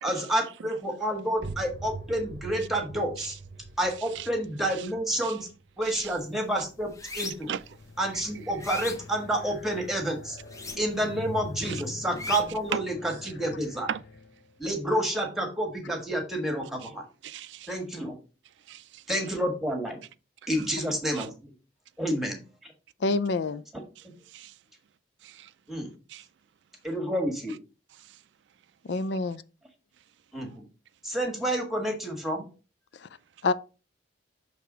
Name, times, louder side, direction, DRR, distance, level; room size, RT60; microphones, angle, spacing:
voice 1, 0.0-3.4 3.8-5.5 5.8-7.5 8.0-10.4 10.8-13.9 14.6-17.0 17.7-18.2 19.1-20.0 20.5-21.5 22.0-22.7 23.7-24.1 25.7-25.9 26.8-27.5 30.3-30.6 31.0-32.5, right 1 dB, ahead, 1.4 m, -29 dB
sound 1, 1.4-6.9, right 3 dB, 40° right, 0.8 m, -43 dB
sound 2, 5.8-6.1 6.5-7.6 8.1-9.8 10.4-11.2 11.4-12.7, left 3 dB, 15° left, 0.7 m, -38 dB
sound 3, 7.3-14.7, left 3 dB, 55° left, 0.9 m, -44 dB
voice 2, 17.2-17.7 18.7-19.0 20.6-20.7 21.1-21.3 24.0-24.6 25.2-25.5 26.1-26.3 28.0-28.2, right 8 dB, 80° right, 0.4 m, -37 dB
voice 3, 23.0-23.6 28.9-29.4 33.4-33.5, left 3 dB, 70° left, 0.4 m, -26 dB
6.6 x 3.4 x 4.9 m
head